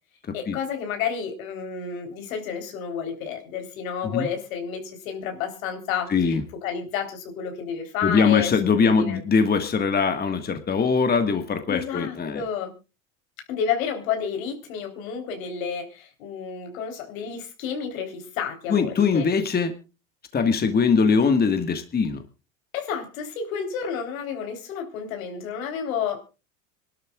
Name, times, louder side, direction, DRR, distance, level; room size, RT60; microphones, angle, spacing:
voice 1, 0.3-9.2 11.7-12.7 13.5-19.3 22.7-26.2, left 7 dB, 80° left, 5 dB, 3.8 m, -30 dB
voice 2, 6.1-6.4 8.0-12.4 18.7-19.7 20.3-22.2, left 5 dB, 25° left, 8 dB, 1.6 m, -21 dB
26.5 x 12.0 x 2.4 m, 0.30 s
hypercardioid pair, 95°, 40 cm